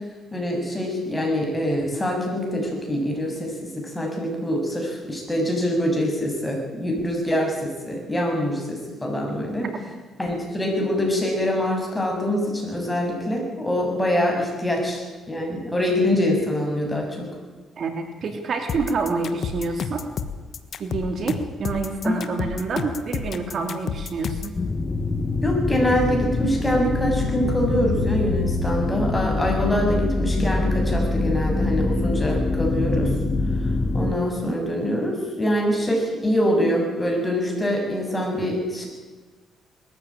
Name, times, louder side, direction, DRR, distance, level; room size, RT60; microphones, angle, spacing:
voice 1, 0.3-9.7 10.2-17.3 22.0-22.2 25.4-33.1 33.9-38.9, equal, 10° left, 0 dB, 7.6 m, -24 dB
voice 2, 17.8-20.0 20.8-24.5 38.4-38.5, right 4 dB, 55° right, 5 dB, 2.6 m, -27 dB
sound 1, 18.7-24.6, left 6 dB, 55° left, 1.4 m, -30 dB
sound 2, 24.5-34.2, left 2 dB, 35° left, 1.5 m, -24 dB
20.5 x 14.5 x 9.0 m, 1.3 s
cardioid pair, 90°, 0 cm